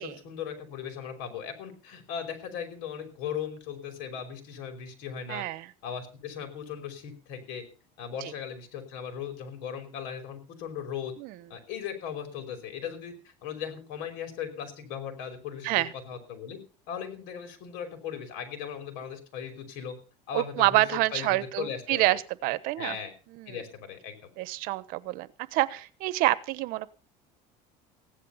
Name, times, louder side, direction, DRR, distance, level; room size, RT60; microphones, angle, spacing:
voice 1, 0.0-5.4 5.8-7.6 8.0-11.1 11.5-16.6 16.9-20.0 20.3-20.8 21.1-22.1 22.8-23.1 23.5-24.2, left 8 dB, 75° left, 6 dB, 5.2 m, -38 dB
voice 2, 5.3-5.7 8.2-8.3 11.2-11.3 15.6-15.9 20.3-23.0 23.4-23.5 24.4-26.9, right 17 dB, 65° right, 16 dB, 1.1 m, -27 dB
16.5 x 11.0 x 5.7 m, 0.36 s
cardioid pair, 145°, 16 cm